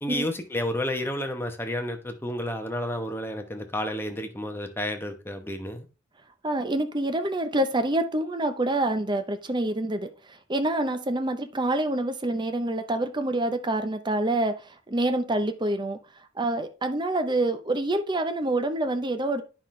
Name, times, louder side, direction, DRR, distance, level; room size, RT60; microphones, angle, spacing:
voice 1, 0.0-5.9, left 1 dB, 10° left, 1.0 m, -31 dB
voice 2, 6.4-16.0 16.4-19.4, right 1 dB, 25° right, 0.7 m, -27 dB
9.8 x 5.8 x 3.2 m
head